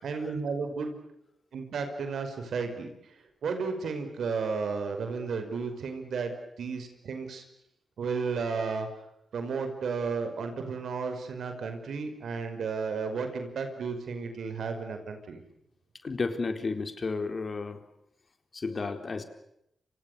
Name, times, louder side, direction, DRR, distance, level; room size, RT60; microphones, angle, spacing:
voice 1, 0.0-1.0 1.5-7.4 8.0-8.9 9.3-15.4, right 5 dB, 75° right, 7 dB, 5.4 m, -33 dB
voice 2, 16.0-17.8 18.5-19.2, left 4 dB, 50° left, 7 dB, 4.1 m, -32 dB
29.5 x 26.0 x 6.8 m, 0.79 s
supercardioid pair, 45°, 0 cm